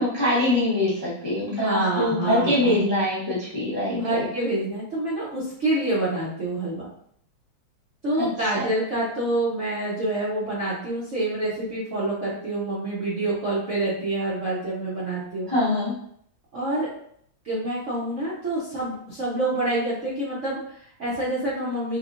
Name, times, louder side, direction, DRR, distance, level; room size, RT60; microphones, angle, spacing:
voice 1, 0.0-4.3 8.2-8.7 15.5-15.9, left 1 dB, 30° left, -10 dB, 0.5 m, -24 dB
voice 2, 1.6-2.8 3.9-6.9 8.0-15.5 16.5-16.9 17.4-22.0, right 2 dB, 60° right, -8 dB, 0.8 m, -27 dB
3.2 x 2.9 x 2.4 m, 0.67 s
omnidirectional pair, 2.1 m